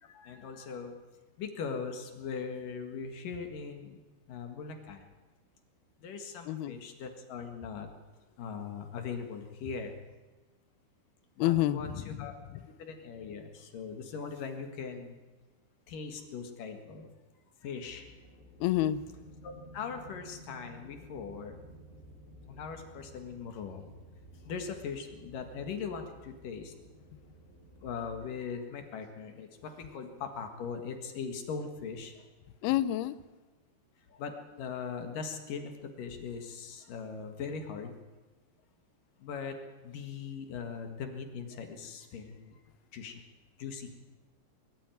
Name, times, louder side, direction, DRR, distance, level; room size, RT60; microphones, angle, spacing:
voice 1, 0.0-0.9 1.4-4.0 4.3-5.1 6.0-7.9 8.4-9.9 11.4-12.4 12.8-15.2 15.9-17.1 17.6-18.1 19.4-21.6 22.5-23.9 24.4-26.7 27.8-32.2 32.7-32.8 34.1-35.7 36.0-38.0 39.2-42.6 42.9-43.2 43.6-43.9, left 5 dB, 55° left, 2.8 m, -40 dB
voice 2, 6.5-6.8 11.4-12.6 18.6-19.0 32.6-33.2, left 13 dB, 85° left, 2.2 m, -29 dB
sound 1, 17.8-28.3, equal, 85° right, 9.0 m, -54 dB
22.5 x 14.0 x 9.2 m
omnidirectional pair, 5.6 m